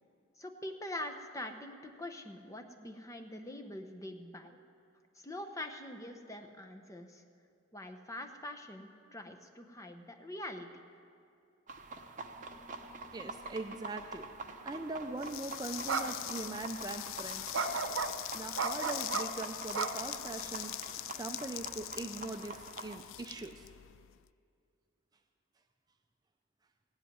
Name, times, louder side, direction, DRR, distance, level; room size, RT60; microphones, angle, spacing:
voice 1, 0.4-4.6 5.1-7.2 7.7-10.8, left 1 dB, 15° left, 5 dB, 0.8 m, -44 dB
sound 1, 11.7-23.0, right 3 dB, 40° right, 0.9 m, -47 dB
voice 2, 13.1-14.3 14.6-17.6 18.3-20.7 21.2-23.7, right 2 dB, 20° right, 6 dB, 0.4 m, -41 dB
sound 2, 15.0-15.2 15.9-16.0 16.4-16.5 17.5-18.1 18.6-19.2 19.7-20.5, right 5 dB, 85° right, 0.8 m, -33 dB
sound 3, 15.2-24.2, left 14 dB, 75° left, 0.3 m, -42 dB
17.0 x 8.1 x 9.3 m, 2.4 s
head